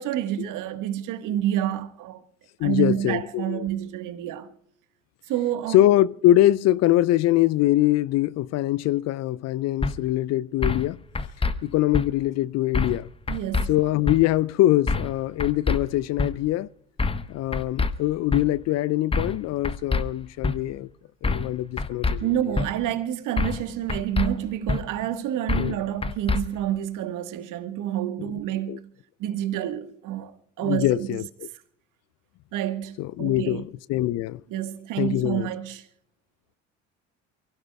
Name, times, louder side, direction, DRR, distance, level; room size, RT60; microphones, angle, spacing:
voice 1, 0.0-2.2 2.6-4.5 5.3-5.8 13.3-13.7 22.2-28.9 29.2-31.2 32.5-33.6 34.5-35.9, right 11 dB, 55° right, 1.5 m, -28 dB
voice 2, 2.6-3.7 5.7-11.0 11.6-13.1 13.7-16.7 17.3-20.9 21.2-22.3 25.5-25.8 28.7-28.8 30.6-31.2 33.0-34.4 35.0-35.5, left 14 dB, 45° left, 0.5 m, -23 dB
sound 1, 9.8-9.9 10.6-10.9 11.2-11.5 11.9-12.1 12.7-13.0 13.3-13.7 14.1-14.2 14.9-15.1 15.4-15.8 16.2-16.3 17.0-17.2 17.5-17.9 18.3-18.4 19.1-19.4 19.6-20.0 20.4-20.6 21.2-21.5 21.8-22.2 22.6-22.7 23.4-23.6 23.9-24.3 24.7-24.8 25.5-25.7 26.0-26.4, left 3 dB, 15° left, 1.0 m, -25 dB
28.5 x 16.0 x 2.3 m
figure-of-eight pair, 60°, 38 cm